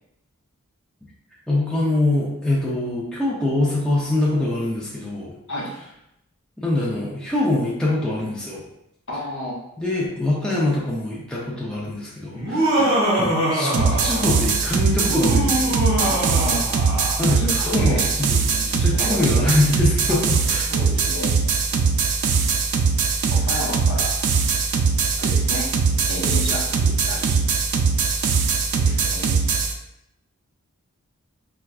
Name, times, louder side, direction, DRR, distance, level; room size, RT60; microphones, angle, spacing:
voice 1, 1.5-5.3 6.6-8.6 9.8-12.7 13.2-15.7 17.2-18.4 18.7-20.7, left 2 dB, 5° left, -7 dB, 0.4 m, -24 dB
voice 2, 9.1-9.6 12.7-12.9 16.0-16.9 17.3-18.1 18.5-19.7 20.1-20.2 20.7-21.4 23.3-24.1 25.2-25.7 26.0-27.4 28.8-29.4, left 1 dB, 55° left, -4 dB, 0.8 m, -31 dB
Laughter, 12.3-14.5 15.0-17.3, right 1 dB, 55° right, 1.2 m, -23 dB
sound 1, 13.7-29.7, right 5 dB, 90° right, 0.4 m, -21 dB
4.4 x 2.3 x 2.3 m, 0.81 s
head